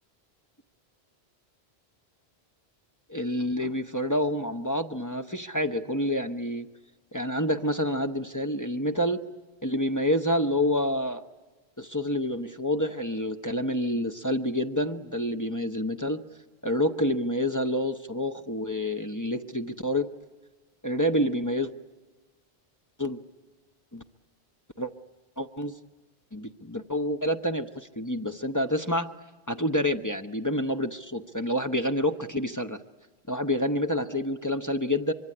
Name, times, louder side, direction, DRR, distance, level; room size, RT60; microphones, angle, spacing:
voice 1, 3.1-6.7 7.1-9.2 9.6-11.2 11.8-16.2 16.6-20.1 20.8-21.7 23.0-23.2 23.9-24.0 24.8-24.9 25.4-25.8 26.3-29.1 29.5-32.8 33.3-35.1, left 1 dB, 20° left, 5 dB, 0.8 m, -28 dB
25.0 x 23.5 x 9.8 m, 1.2 s
omnidirectional pair, 1.1 m